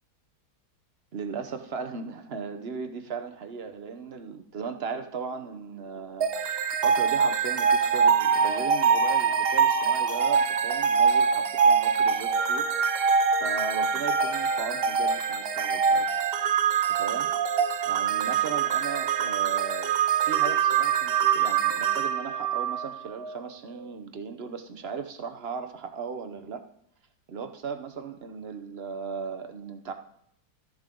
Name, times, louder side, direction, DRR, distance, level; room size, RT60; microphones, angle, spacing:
voice 1, 1.1-12.6 13.4-16.1 17.0-17.3 17.9-19.9 20.2-26.6 27.3-29.9, right 5 dB, 45° right, 8 dB, 1.0 m, -37 dB
sound 1, 6.2-23.4, right 6 dB, 65° right, 0.6 m, -24 dB
14.0 x 7.2 x 3.7 m, 0.70 s
omnidirectional pair, 1.7 m